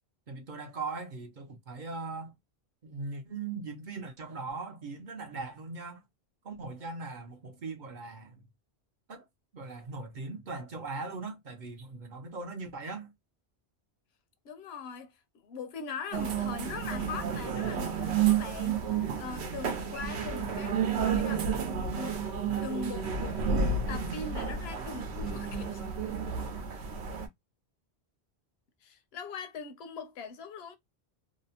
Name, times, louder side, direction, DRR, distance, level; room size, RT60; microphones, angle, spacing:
voice 1, 0.3-2.3 2.8-6.0 6.4-8.4 9.1-9.3 9.5-13.1, right 3 dB, 55° right, 0.7 m, -40 dB
voice 2, 14.4-22.2 22.6-25.8 28.8-30.8, left 5 dB, 75° left, 0.8 m, -41 dB
sound 1, 16.1-27.3, right 6 dB, 85° right, 0.9 m, -31 dB
2.7 x 2.0 x 2.7 m
omnidirectional pair, 1.1 m